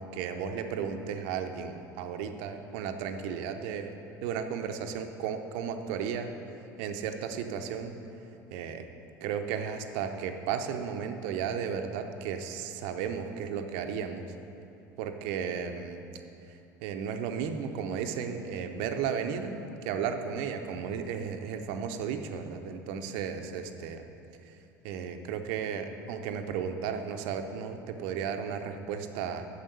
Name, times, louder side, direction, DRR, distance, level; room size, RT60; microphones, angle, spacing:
voice 1, 0.0-3.9 4.2-6.3 6.8-7.9 8.5-8.8 9.2-14.3 15.0-16.0 16.5-19.6 19.8-24.1 24.5-24.6 24.8-29.4, right 7 dB, 60° right, 6 dB, 0.8 m, -34 dB
9.1 x 7.2 x 6.9 m, 2.8 s
hypercardioid pair, 70°, 10 cm